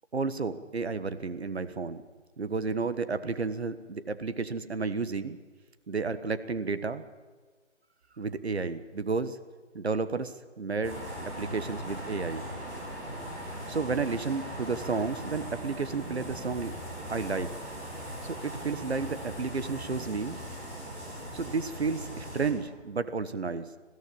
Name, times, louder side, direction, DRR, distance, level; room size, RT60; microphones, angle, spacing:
voice 1, 0.1-2.0 2.4-5.4 5.9-7.0 8.2-9.4 9.7-11.0 11.4-12.4 13.7-16.7 17.1-17.5 18.2-20.4 21.3-23.7, right 4 dB, 55° right, 13 dB, 1.3 m, -32 dB
sound 1, 10.8-22.5, equal, 10° right, 2.5 m, -39 dB
21.0 x 15.0 x 8.7 m, 1.4 s
hypercardioid pair, 175°, 38 cm